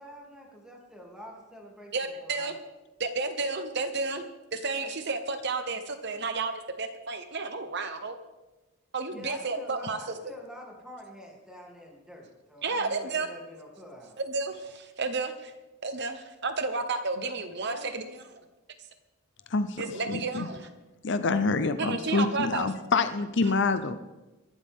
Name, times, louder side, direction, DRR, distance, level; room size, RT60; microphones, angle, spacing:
voice 1, 0.0-2.6 9.1-14.2 17.6-18.1, equal, 5° right, -2 dB, 3.0 m, -46 dB
voice 2, 1.9-2.6 3.0-4.2 4.5-8.2 8.9-10.0 12.6-13.3 14.2-15.5 15.8-18.0 19.8-20.7 21.8-22.7 23.4-23.5, right 3 dB, 50° right, 8 dB, 1.0 m, -31 dB
voice 3, 19.5-20.5 21.0-24.0, left 3 dB, 55° left, 10 dB, 0.7 m, -27 dB
22.0 x 12.0 x 3.7 m, 1.1 s
head